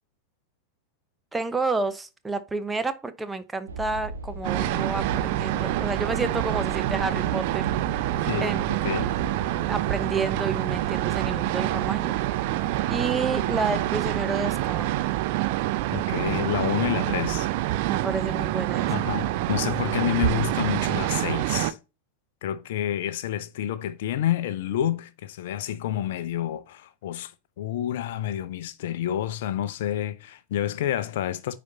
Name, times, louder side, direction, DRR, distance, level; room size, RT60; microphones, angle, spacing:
voice 1, 1.3-7.7 7.9-8.1 8.4-8.6 9.7-12.5 12.9-15.0 17.9-18.9, right 3 dB, 10° right, 0.7 m, -30 dB
sound 1, 3.7-15.0, right 2 dB, 70° right, 1.2 m, -39 dB
sound 2, 4.4-21.7, right 16 dB, 50° right, 0.5 m, -26 dB
voice 2, 8.2-9.2 15.9-17.5 18.9-21.8 22.4-27.3 27.6-31.6, left 11 dB, 55° left, 0.6 m, -29 dB
9.4 x 4.2 x 2.8 m
figure-of-eight pair, 90°, 0 cm